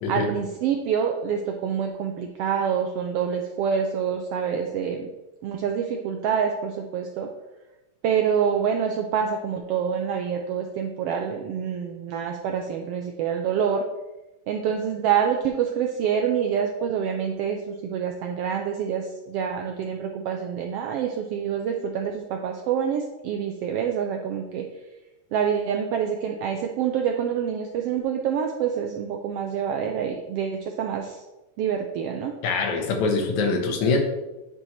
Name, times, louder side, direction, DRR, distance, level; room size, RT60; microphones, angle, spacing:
voice 1, 0.1-5.1 5.4-7.3 8.0-13.9 14.5-24.6 25.3-31.2 31.6-32.3, right 7 dB, 85° right, 3 dB, 1.3 m, -26 dB
voice 2, 32.4-34.0, left 4 dB, 75° left, 3 dB, 2.4 m, -23 dB
9.4 x 4.6 x 4.3 m, 1.1 s
omnidirectional pair, 3.3 m